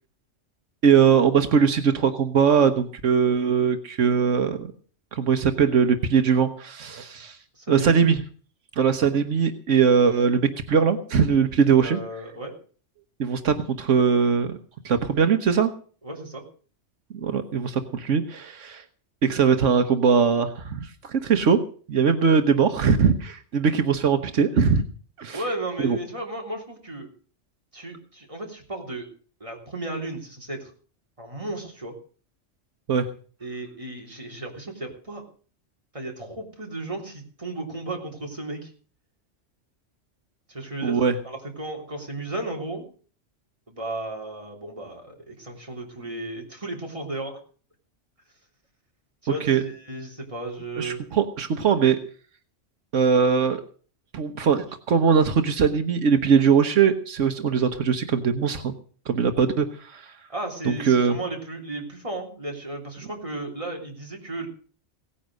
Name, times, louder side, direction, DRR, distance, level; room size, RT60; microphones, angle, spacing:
voice 1, 0.8-4.7 5.1-7.4 7.7-8.2 8.8-12.0 13.2-14.6 14.8-15.7 17.1-18.8 19.2-21.6 21.9-24.8 25.2-25.4 25.8-26.0 32.9-33.1 40.8-41.2 49.4-49.6 50.8-52.0 52.9-53.6 54.1-58.7 59.1-60.1 60.6-61.2, right 6 dB, 80° right, 8 dB, 1.4 m, -21 dB
voice 2, 7.5-8.0 11.7-12.5 16.0-16.4 25.3-27.1 27.7-29.1 29.4-30.7 31.2-32.0 33.4-35.2 35.9-38.7 40.5-42.8 43.7-47.4 49.2-51.0 60.3-64.5, right 2 dB, 25° right, 1 dB, 3.5 m, -34 dB
17.5 x 10.0 x 6.4 m, 0.42 s
omnidirectional pair, 1.3 m